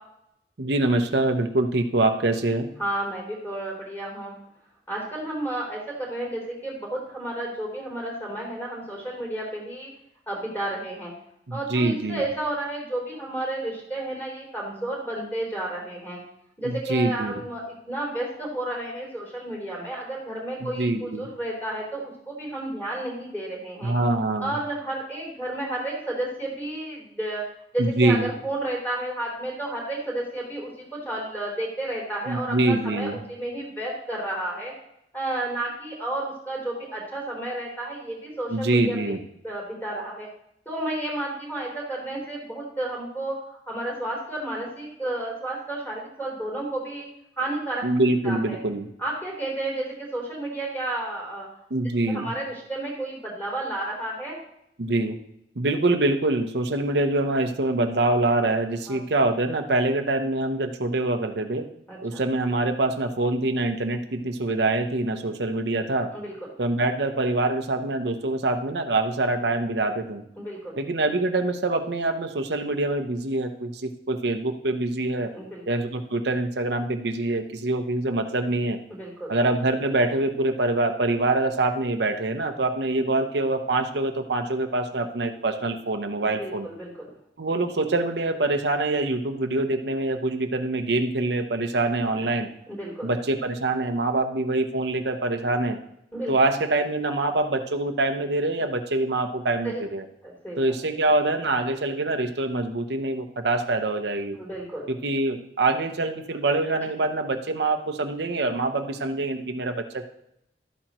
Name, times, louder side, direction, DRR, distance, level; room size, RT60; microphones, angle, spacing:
voice 1, 0.6-2.7 11.5-12.2 16.6-17.3 20.6-21.3 23.8-24.5 27.8-28.3 32.3-33.2 38.5-39.2 47.8-48.9 51.7-52.3 54.8-55.2 55.6-61.7 62.0-66.1 66.6-70.2 70.8-75.3 75.7-78.8 79.3-86.7 87.4-92.5 93.0-95.8 96.3-100.1 100.6-104.4 104.9-110.1, right 2 dB, 70° right, 5 dB, 0.8 m, -25 dB
voice 2, 2.8-4.3 4.9-9.9 10.3-11.1 11.5-16.2 16.6-23.9 24.4-27.4 27.7-34.7 35.1-39.0 39.4-40.3 40.6-43.3 43.7-47.1 47.4-47.8 48.2-48.6 49.0-51.5 52.1-54.4 58.9-59.0 61.9-62.2 66.1-66.5 70.4-70.7 75.3-75.6 78.9-79.3 86.2-87.1 92.7-93.1 96.1-96.3 99.6-99.8 100.2-100.7 104.4-104.9, right 1 dB, 10° left, -3 dB, 3.4 m, -32 dB
12.5 x 8.7 x 3.0 m, 0.76 s
head